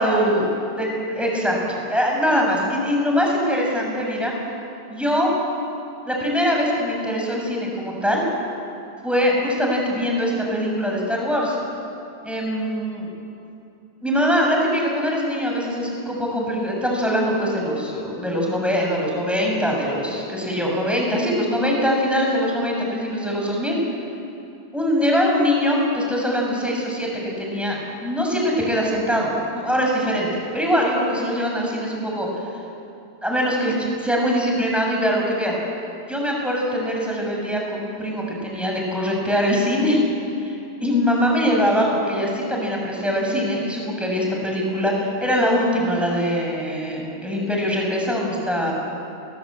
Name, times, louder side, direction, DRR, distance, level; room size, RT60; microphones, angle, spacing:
voice 1, 0.0-0.5 0.8-4.3 4.9-5.3 6.1-8.2 9.0-11.6 12.2-13.1 14.0-23.8 24.7-27.1 27.4-30.3 30.5-32.3 33.2-35.5 36.1-40.0 40.4-40.5 40.8-48.7, equal, ahead, -1 dB, 6.1 m, -22 dB
28.5 x 20.0 x 8.5 m, 2.7 s
omnidirectional pair, 1.2 m